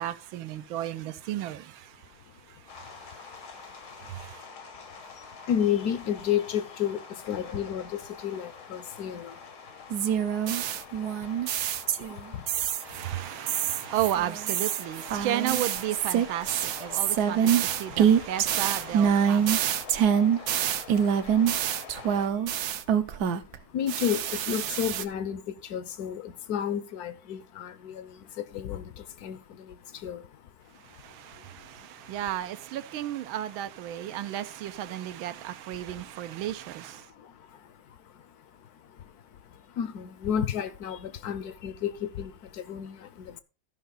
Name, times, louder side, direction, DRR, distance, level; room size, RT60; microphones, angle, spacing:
voice 1, 0.0-1.9 4.1-4.4 12.8-19.5 31.0-37.0, right 12 dB, 80° right, 1.4 m, -33 dB
sound 1, 2.7-22.3, left 5 dB, 90° left, 2.6 m, -46 dB
voice 2, 5.1-9.4 12.3-13.4 16.8-17.5 18.1-18.3 19.4-19.8 20.3-20.4 21.0-21.1 22.3-22.8 23.1-23.3 23.7-30.4 30.7-32.2 34.1-34.4 35.1-35.4 35.7-36.1 36.9-43.4, left 9 dB, 65° left, 1.0 m, -34 dB
sound 2, 9.9-12.2 12.5-13.0 13.5-23.6 23.9-25.0, right 8 dB, 65° right, 1.0 m, -26 dB
14.0 x 5.6 x 4.0 m
omnidirectional pair, 2.2 m